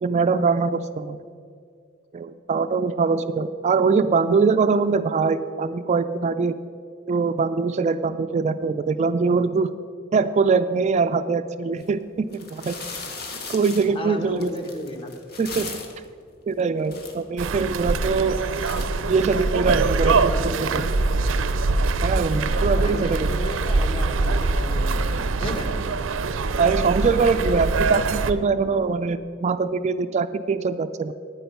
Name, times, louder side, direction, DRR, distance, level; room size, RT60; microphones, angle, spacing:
voice 1, 0.0-1.2 2.1-6.5 7.1-9.7 10.1-12.3 12.5-12.8 13.5-14.5 15.4-15.7 16.5-18.4 19.1-20.8 22.0-23.3 26.6-31.1, right 4 dB, 35° right, 10 dB, 0.3 m, -22 dB
sound 1, 11.7-11.8 12.3-16.0 16.6-16.7 16.9-17.6 18.1-18.3 18.5-19.7, left 3 dB, 55° left, 1.4 m, -37 dB
voice 2, 13.9-15.1 19.9-21.0 22.4-25.8, left 1 dB, 25° left, 5 dB, 1.0 m, -34 dB
sound 2, 17.4-28.3, right 3 dB, 90° right, 0.5 m, -23 dB
10.0 x 9.4 x 5.4 m, 2.3 s
head